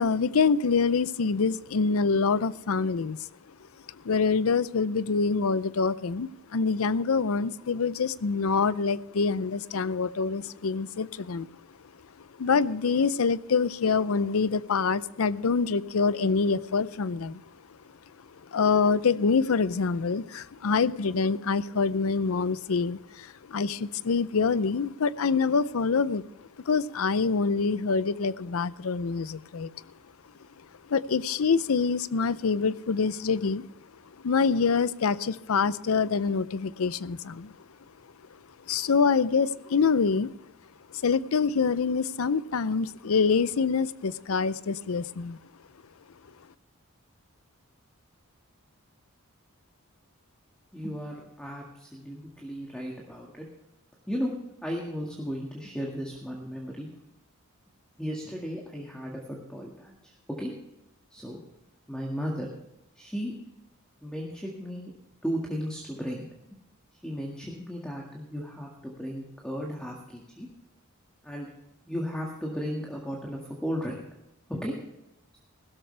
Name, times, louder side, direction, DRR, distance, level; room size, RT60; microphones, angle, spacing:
voice 1, 0.0-3.3 4.0-11.5 12.2-17.4 18.5-26.2 26.7-29.7 30.9-33.7 34.2-37.6 38.7-40.3 40.9-45.4, left 5 dB, 80° left, 17 dB, 0.5 m, -25 dB
voice 2, 50.7-53.4 54.1-54.3 54.6-56.9 58.0-60.0 60.4-60.5 61.1-61.4 61.9-62.5 63.0-63.3 64.0-64.9 65.2-66.3 67.0-70.5 71.2-71.5 71.9-74.0 74.5-74.7, equal, 5° left, -2 dB, 1.9 m, -35 dB
16.0 x 13.0 x 3.3 m, 0.88 s
head